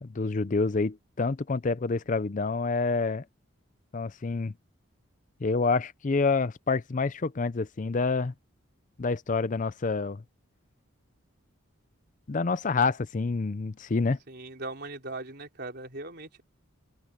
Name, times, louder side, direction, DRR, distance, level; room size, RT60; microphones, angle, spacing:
voice 1, 0.0-3.2 3.9-4.5 5.4-8.3 9.0-10.2 12.3-14.2, left 4 dB, 40° left, 0.5 m, -27 dB
voice 2, 14.3-16.4, right 2 dB, 50° right, 4.1 m, -39 dB
open air
head